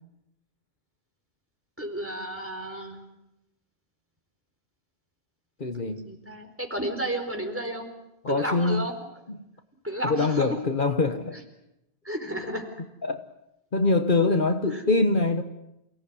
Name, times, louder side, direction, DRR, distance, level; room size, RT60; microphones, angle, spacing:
voice 1, 1.8-3.0 5.7-7.9 8.3-8.9 9.8-10.6 11.3-11.4 12.0-12.7 14.7-14.8, right 1 dB, 10° right, 3 dB, 4.5 m, -32 dB
voice 2, 5.6-6.1 8.2-8.9 10.0-11.4 13.0-13.2 13.7-15.4, left 3 dB, 55° left, 8 dB, 1.5 m, -24 dB
29.0 x 17.5 x 9.7 m, 0.88 s
omnidirectional pair, 1.1 m